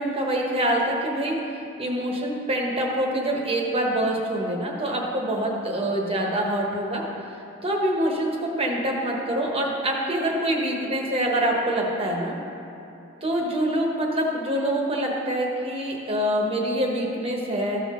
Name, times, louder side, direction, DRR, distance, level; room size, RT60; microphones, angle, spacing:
voice 1, 0.0-7.0 7.6-12.4 13.2-17.8, right 1 dB, 25° right, -1 dB, 1.1 m, -25 dB
13.5 x 5.7 x 3.7 m, 3.0 s
head